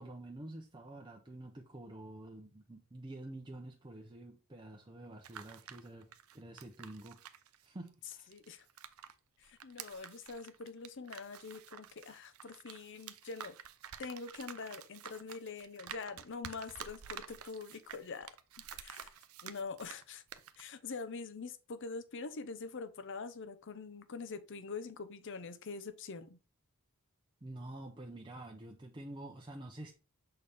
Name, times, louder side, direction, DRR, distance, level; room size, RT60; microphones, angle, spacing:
voice 1, 0.0-6.1 6.3-7.2 7.6-8.3 27.4-29.9, right 1 dB, 20° right, 0.6 m, -48 dB
sound 1, 5.0-9.1 9.4-20.0 20.3-20.6, right 9 dB, 70° right, 0.6 m, -50 dB
voice 2, 8.3-8.7 9.4-13.6 14.0-18.3 18.7-19.1 19.4-20.2 20.6-26.4, left 4 dB, 55° left, 0.7 m, -44 dB
6.7 x 4.2 x 3.4 m
head